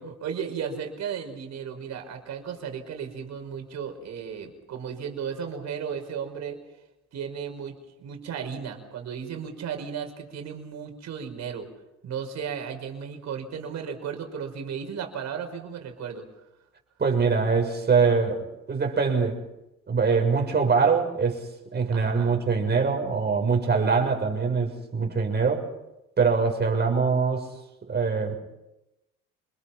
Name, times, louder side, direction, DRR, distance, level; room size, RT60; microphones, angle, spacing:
voice 1, 0.0-6.6 7.1-11.7 12.0-16.3 21.9-22.4, right 7 dB, 60° right, 5 dB, 5.7 m, -35 dB
voice 2, 17.0-19.4 19.9-25.7 26.2-27.5 27.9-28.4, right 5 dB, 35° right, 3 dB, 6.7 m, -23 dB
28.5 x 22.0 x 6.0 m, 0.94 s
supercardioid pair, 90°, 31 cm